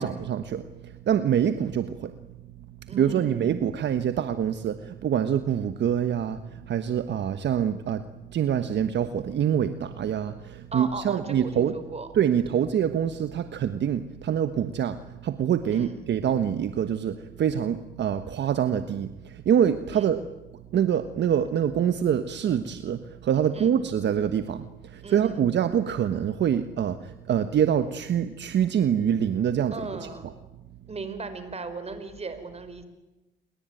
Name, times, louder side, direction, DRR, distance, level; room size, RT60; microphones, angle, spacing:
voice 1, 0.0-2.1 2.9-8.0 8.3-11.8 12.1-20.3 20.7-30.3, right 9 dB, 60° right, 10 dB, 1.3 m, -25 dB
voice 2, 2.9-3.6 10.7-12.4 15.7-16.0 19.9-20.1 23.5-23.7 25.0-25.4 29.7-30.3 30.9-32.8, right 3 dB, 30° right, 10 dB, 5.1 m, -37 dB
29.0 x 22.0 x 9.2 m, 1.0 s
cardioid pair, 90°, 20 cm